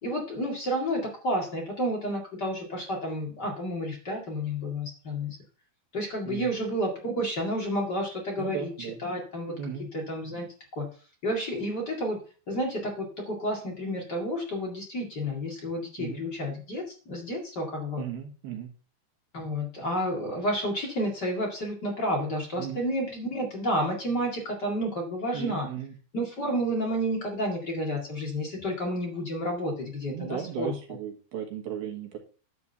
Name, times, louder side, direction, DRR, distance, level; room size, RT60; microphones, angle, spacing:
voice 1, 0.0-5.4 5.9-9.6 9.9-10.5 10.7-10.9 11.2-12.2 12.5-18.0 19.3-25.7 26.1-30.7, equal, 35° left, -1 dB, 1.7 m, -30 dB
voice 2, 8.4-9.0 9.6-9.9 16.0-16.2 18.0-18.7 22.6-22.8 25.3-25.9 30.1-32.2, right 9 dB, 65° right, 2 dB, 2.8 m, -36 dB
11.0 x 3.8 x 7.0 m, 0.37 s
omnidirectional pair, 5.2 m